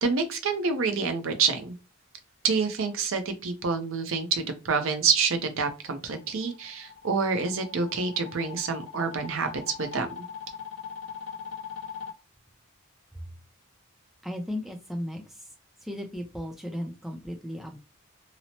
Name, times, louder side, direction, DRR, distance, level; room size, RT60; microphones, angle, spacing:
voice 1, 0.0-1.7 2.4-10.2, right 5 dB, 65° right, 7 dB, 0.5 m, -27 dB
sound 1, 6.0-12.1, left 7 dB, 60° left, 0.4 m, -41 dB
voice 2, 14.2-15.5 15.8-17.8, left 1 dB, ahead, 2 dB, 0.4 m, -35 dB
2.9 x 2.0 x 2.7 m, 0.29 s
head